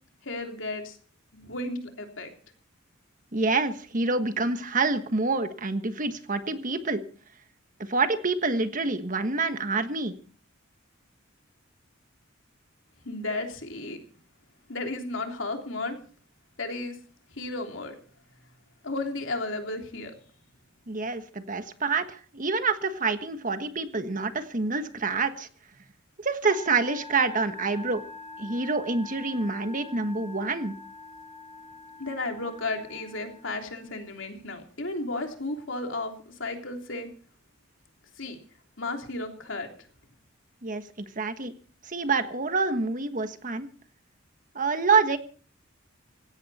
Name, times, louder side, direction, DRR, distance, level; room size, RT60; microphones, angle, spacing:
voice 1, 0.2-1.0 1.3-2.3 13.0-14.0 14.7-16.0 16.6-16.9 17.4-17.9 18.8-20.1 32.0-37.1 38.2-38.4 38.8-39.7, left 2 dB, 70° left, 3 dB, 3.4 m, -33 dB
voice 2, 3.3-7.0 7.8-10.1 20.9-25.5 26.2-28.0 28.4-30.7 40.6-41.5 41.8-43.7 44.5-45.2, right 4 dB, 40° right, 9 dB, 1.4 m, -27 dB
Musical instrument, 26.4-34.1, left 3 dB, 20° right, 4.0 m, -45 dB
17.5 x 16.5 x 4.3 m, 0.41 s
head